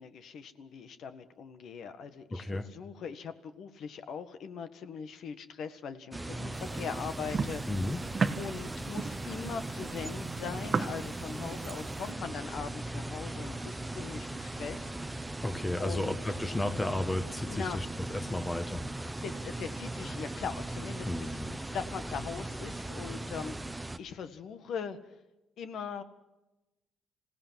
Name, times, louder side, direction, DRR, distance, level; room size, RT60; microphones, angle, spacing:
voice 1, 0.0-7.6 8.3-14.9 15.8-16.1 17.4-17.8 19.2-21.4 21.7-25.0 25.6-26.0, left 6 dB, 60° left, 10 dB, 1.6 m, -41 dB
voice 2, 2.3-2.7 7.7-8.1 15.4-17.9 18.1-18.9 21.0-21.6, left 1 dB, 15° left, 9 dB, 1.2 m, -33 dB
sound 1, 6.1-24.0, right 1 dB, 10° right, 1.0 m, -39 dB
sound 2, 6.5-12.1, right 5 dB, 35° right, 1.2 m, -36 dB
26.5 x 17.0 x 7.5 m, 0.99 s
cardioid pair, 115°, 0 cm